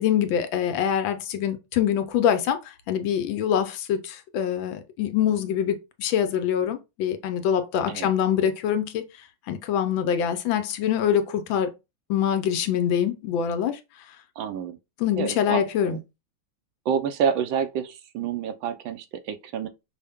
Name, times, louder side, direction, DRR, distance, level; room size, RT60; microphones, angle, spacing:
voice 1, 0.0-9.0 9.5-11.7 12.1-13.8 15.0-16.0, left 9 dB, 75° left, 1.3 m, -24 dB
voice 2, 14.4-14.8 15.1-16.0 16.9-19.7, right 7 dB, 75° right, 1.3 m, -28 dB
5.5 x 2.1 x 3.4 m
omnidirectional pair, 2.2 m